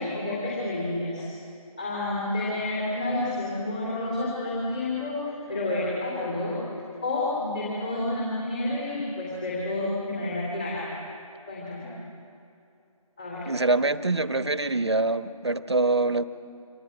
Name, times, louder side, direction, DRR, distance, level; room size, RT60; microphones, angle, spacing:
voice 1, 0.0-1.3 1.8-6.6 7.0-10.8 11.5-11.9 13.2-13.5, left 2 dB, 15° left, -5 dB, 3.6 m, -29 dB
voice 2, 13.5-16.2, right 2 dB, 45° right, 11 dB, 1.3 m, -24 dB
27.0 x 25.0 x 8.8 m, 2.6 s
figure-of-eight pair, 170°, 19 cm